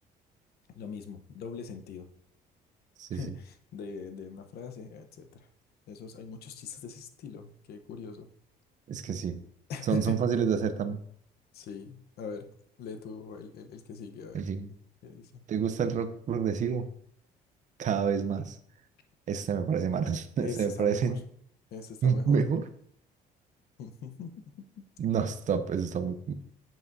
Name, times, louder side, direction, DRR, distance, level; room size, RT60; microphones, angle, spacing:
voice 1, 0.8-2.1 3.1-5.5 5.9-8.3 9.7-10.2 11.5-12.5 12.8-14.4 15.0-15.4 20.1-21.2 21.7-22.4 23.8-24.7, left 6 dB, 70° left, 7 dB, 0.9 m, -41 dB
voice 2, 8.9-9.4 9.9-11.0 14.3-14.7 15.5-16.9 17.8-18.6 19.3-21.2 22.0-22.7 25.0-26.3, right 6 dB, 45° right, 10 dB, 0.7 m, -28 dB
8.2 x 7.4 x 2.7 m, 0.66 s
cardioid pair, 110°, 17 cm